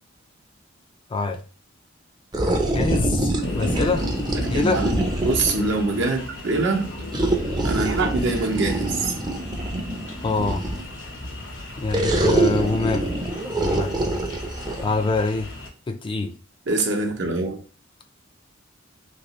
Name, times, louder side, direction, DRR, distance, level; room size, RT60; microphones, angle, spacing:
voice 1, 1.1-1.4 2.6-4.1 4.5-4.8 10.2-10.6 11.8-13.1 13.6-14.0 14.8-15.5 15.9-16.3, left 3 dB, 25° left, 0.4 m, -25 dB
sound 1, 2.3-5.7 7.1-10.9 11.9-14.8, right 1 dB, 20° right, 0.5 m, -25 dB
sound 2, 3.4-15.7, left 1 dB, 70° left, 1.0 m, -36 dB
voice 2, 4.3-6.9 7.6-9.1 16.7-17.6, right 3 dB, 65° right, 0.8 m, -24 dB
3.0 x 2.9 x 2.9 m
head